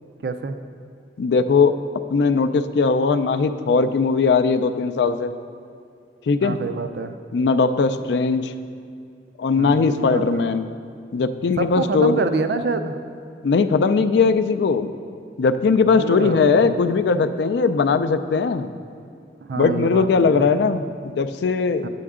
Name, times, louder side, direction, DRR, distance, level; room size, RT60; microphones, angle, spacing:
voice 1, 0.2-0.6 6.4-7.1 9.6-10.4 11.6-12.9 15.8-16.9 19.4-20.4 21.8-21.9, right 3 dB, 65° right, 8 dB, 0.4 m, -27 dB
voice 2, 1.2-1.8 2.1-5.3 6.3-6.6 7.3-8.5 9.4-10.6 11.1-12.2 13.4-14.9 15.4-18.7 19.6-21.9, left 4 dB, 70° left, 11 dB, 0.4 m, -19 dB
8.4 x 7.7 x 3.6 m, 2.4 s
head